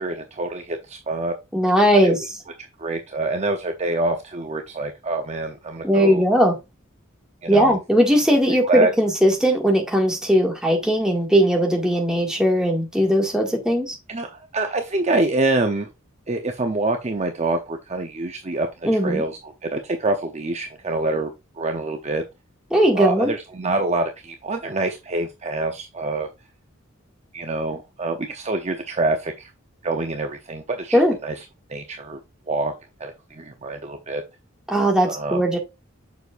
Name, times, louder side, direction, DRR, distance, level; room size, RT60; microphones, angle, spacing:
voice 1, 0.0-1.3 2.0-2.1 2.6-6.3 7.4-7.8 8.6-8.9 14.1-15.9 16.3-21.3 21.6-22.2 22.9-26.3 27.3-29.5 29.8-31.3 31.7-32.2 32.5-32.7 33.0-34.2 35.0-35.4, right 2 dB, 35° right, 0.7 m, -26 dB
voice 2, 1.5-2.3 5.8-6.5 7.5-14.0 18.8-19.2 22.7-23.3 30.9-31.1 34.7-35.6, equal, 5° right, 1.9 m, -19 dB
7.1 x 6.2 x 2.5 m
head